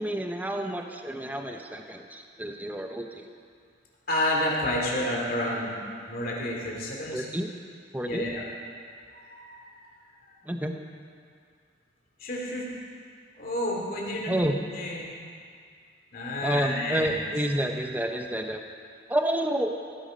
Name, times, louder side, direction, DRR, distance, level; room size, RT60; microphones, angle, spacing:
voice 1, 0.0-3.3 7.1-7.5 7.9-8.2 10.4-10.8 14.3-14.5 16.4-18.6 19.1-19.7, right 1 dB, 10° right, 4 dB, 0.7 m, -29 dB
voice 2, 4.1-5.8 6.1-7.3 8.0-8.4 9.1-9.6 12.2-12.7 13.4-14.5 14.7-15.1 16.1-17.1, left 1 dB, 50° left, -2 dB, 2.7 m, -30 dB
17.0 x 9.7 x 5.2 m, 2.2 s
head